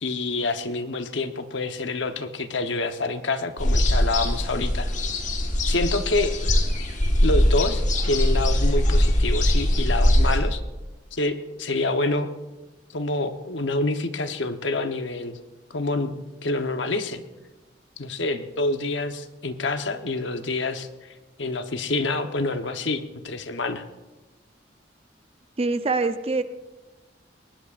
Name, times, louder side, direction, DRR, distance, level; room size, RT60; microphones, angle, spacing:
voice 1, 0.0-4.9 5.6-6.3 7.2-10.6 11.1-12.3 12.9-15.4 15.7-17.2 18.0-21.1 21.4-23.8, left 2 dB, 80° left, 8 dB, 1.0 m, -27 dB
sound 1, 3.6-10.4, left 1 dB, 40° left, 1.4 m, -21 dB
voice 2, 25.6-26.4, right 3 dB, 35° right, 10 dB, 0.6 m, -24 dB
22.0 x 19.0 x 2.5 m, 1.1 s
head